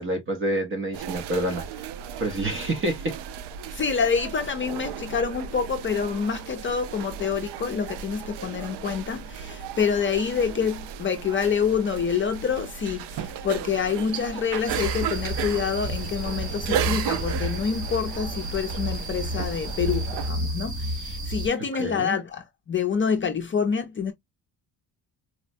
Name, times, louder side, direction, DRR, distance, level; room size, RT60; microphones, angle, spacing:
voice 1, 0.0-1.6 2.2-3.2 21.8-22.2, right 1 dB, 30° right, 0.6 m, -27 dB
sound 1, 0.9-20.3, right 8 dB, 85° right, 0.5 m, -35 dB
voice 2, 3.7-24.1, left 6 dB, 30° left, 0.5 m, -27 dB
sound 2, 14.6-21.5, right 1 dB, 50° right, 1.3 m, -31 dB
4.2 x 2.0 x 2.6 m
cardioid pair, 145°, 40 cm